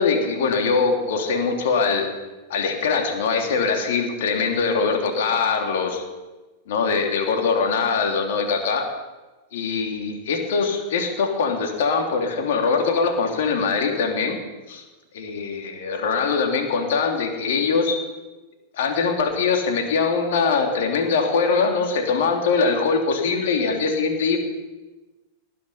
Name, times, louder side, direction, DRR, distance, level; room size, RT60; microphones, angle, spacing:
voice 1, 0.0-2.1 2.5-6.0 6.7-8.9 9.5-14.4 14.7-14.8 15.1-18.0 18.7-24.4, left 5 dB, 70° left, 3 dB, 3.0 m, -22 dB
19.5 x 10.0 x 5.7 m, 1.2 s
hypercardioid pair, 100°, 0 cm